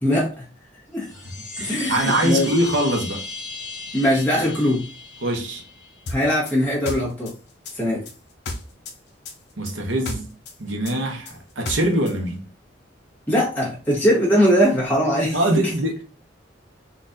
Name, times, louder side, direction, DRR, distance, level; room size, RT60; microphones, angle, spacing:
voice 1, 0.0-0.5 0.9-1.1 1.6-2.5 3.9-4.8 6.1-7.3 7.7-8.0 13.3-15.4, equal, 10° left, 1.2 m, -20 dB
sound 1, 0.9-6.0, left 3 dB, 40° left, 1.1 m, -35 dB
voice 2, 1.6-3.2 5.2-5.6 9.6-10.3 10.6-12.4 15.3-16.0, right 1 dB, 80° right, 0.9 m, -23 dB
sound 2, 6.1-9.0 9.2-12.2, left 2 dB, 60° left, 0.6 m, -33 dB
4.0 x 2.4 x 2.6 m
head